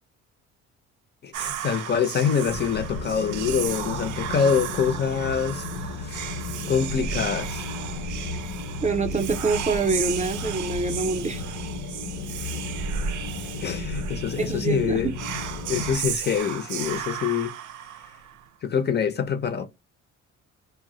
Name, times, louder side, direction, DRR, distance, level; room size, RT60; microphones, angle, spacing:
voice 1, 1.2-5.7 6.0-6.3 6.7-7.7 13.6-15.1 15.7-17.5 18.6-19.7, left 7 dB, 35° left, 0.4 m, -25 dB
Whispering, 1.3-18.5, right 8 dB, 75° right, 0.5 m, -34 dB
sound 1, 2.5-15.9, left 3 dB, 85° left, 0.6 m, -34 dB
voice 2, 8.8-11.4 14.4-15.1, right 4 dB, 25° right, 0.5 m, -25 dB
2.1 x 2.0 x 3.7 m
cardioid pair, 90°, 30 cm